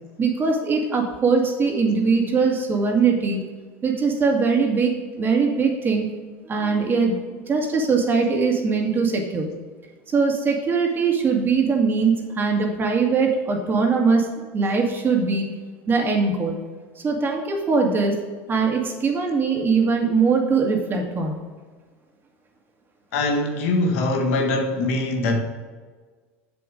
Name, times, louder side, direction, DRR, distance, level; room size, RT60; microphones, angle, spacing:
voice 1, 0.2-3.4 3.8-6.1 6.5-9.5 10.1-15.5 15.9-16.6 17.0-18.1 18.5-21.4, right 4 dB, 30° right, 2.4 m, -21 dB
voice 2, 23.1-25.4, left 2 dB, 80° left, 1.7 m, -22 dB
7.6 x 7.3 x 5.2 m
supercardioid pair, 100°, 7 cm